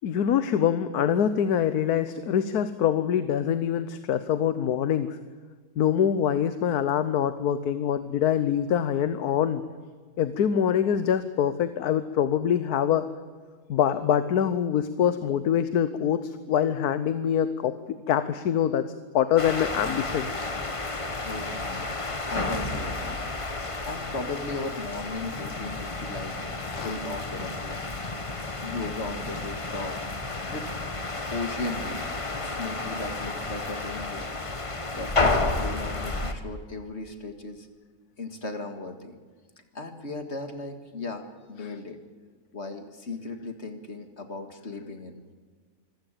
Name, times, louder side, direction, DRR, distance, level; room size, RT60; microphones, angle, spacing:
voice 1, 0.0-5.2 5.8-9.6 10.2-13.1 13.7-20.3 26.7-26.9 41.6-41.7, left 9 dB, 75° left, 12 dB, 1.3 m, -25 dB
sound 1, 19.4-36.3, left 3 dB, 20° left, 1.2 m, -31 dB
voice 2, 21.2-21.9 22.3-26.4 26.6-28.2 28.6-30.0 30.5-30.7 31.3-32.1 32.4-34.3 35.0-37.7 38.2-39.2 39.7-42.0 42.5-45.2, left 2 dB, 45° left, 7 dB, 2.1 m, -37 dB
25.0 x 15.5 x 9.0 m, 1.5 s
omnidirectional pair, 1.7 m